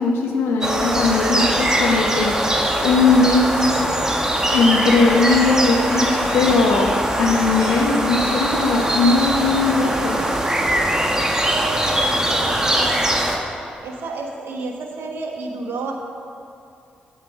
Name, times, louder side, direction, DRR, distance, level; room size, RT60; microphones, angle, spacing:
voice 1, 0.0-2.4 2.8-3.8 4.5-10.2, left 3 dB, 75° left, 2 dB, 1.0 m, -19 dB
sound 1, 0.6-13.4, right 1 dB, 15° right, 1.7 m, -21 dB
voice 2, 11.1-13.1 13.8-15.9, right 3 dB, 65° right, 1 dB, 1.3 m, -31 dB
8.8 x 8.0 x 6.3 m, 2.5 s
hypercardioid pair, 40°, 4 cm